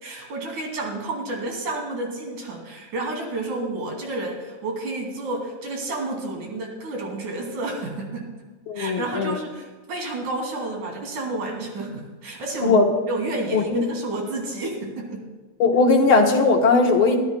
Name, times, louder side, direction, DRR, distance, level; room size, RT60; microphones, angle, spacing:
voice 1, 0.0-8.3 8.7-12.8 13.1-15.3, right 2 dB, 75° right, 1 dB, 4.0 m, -30 dB
voice 2, 8.7-9.3 12.6-12.9 13.5-13.8 15.6-17.2, left 3 dB, 60° left, 2 dB, 1.5 m, -18 dB
23.0 x 13.0 x 2.2 m, 1.4 s
omnidirectional pair, 3.5 m